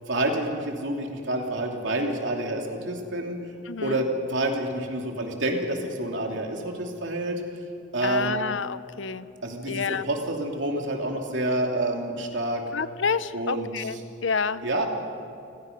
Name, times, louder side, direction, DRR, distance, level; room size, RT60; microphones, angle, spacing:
voice 1, 0.1-3.4 3.8-7.4 7.9-8.4 9.4-12.6 13.3-14.0 14.6-14.9, right 1 dB, 70° right, 1 dB, 3.0 m, -28 dB
voice 2, 3.7-4.0 8.0-9.3 9.7-10.1 12.7-14.6, left 5 dB, 75° left, 15 dB, 0.7 m, -29 dB
29.5 x 17.0 x 5.4 m, 2.5 s
head